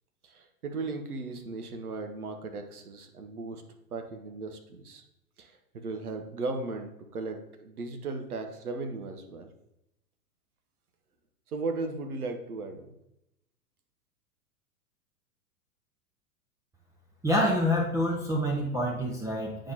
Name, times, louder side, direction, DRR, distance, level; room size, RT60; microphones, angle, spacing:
voice 1, 0.2-3.6 3.9-5.0 5.4-9.5 11.5-12.9, right 3 dB, 75° right, 5 dB, 1.1 m, -36 dB
voice 2, 17.2-19.7, equal, 5° right, -2 dB, 0.7 m, -27 dB
8.9 x 5.2 x 2.9 m, 0.83 s
figure-of-eight pair, 95°, 45 cm